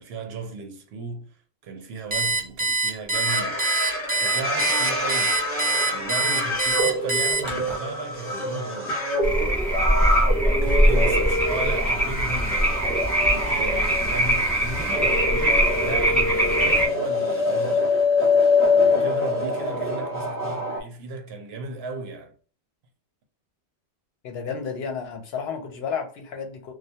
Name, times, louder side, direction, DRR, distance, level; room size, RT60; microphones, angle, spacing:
voice 1, 0.0-1.4 1.6-3.6 4.2-5.5 5.9-9.0 10.4-12.8 13.2-17.9 18.7-22.3, right 3 dB, 75° right, 0.8 m, -35 dB
Alarm, 2.1-7.8, right 3 dB, 40° right, 0.4 m, -24 dB
sound 1, 3.1-20.8, left 2 dB, 40° left, 0.9 m, -25 dB
sound 2, 9.2-16.9, right 1 dB, ahead, 0.7 m, -22 dB
voice 2, 24.2-26.8, left 6 dB, 75° left, 0.8 m, -32 dB
2.2 x 2.2 x 2.7 m
omnidirectional pair, 1.1 m